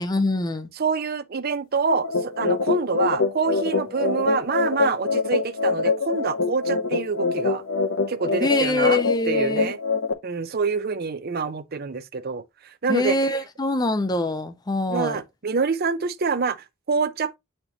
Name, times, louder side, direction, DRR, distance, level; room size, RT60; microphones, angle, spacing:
voice 1, 0.0-0.7 8.4-9.7 12.9-15.2, left 2 dB, 20° left, 0.6 m, -24 dB
voice 2, 0.8-7.6 8.1-9.0 9.3-9.8 10.2-13.4 14.9-17.4, right 5 dB, 50° right, 0.6 m, -26 dB
sound 1, 1.9-10.1, left 4 dB, 75° left, 0.7 m, -24 dB
8.3 x 4.3 x 2.8 m
head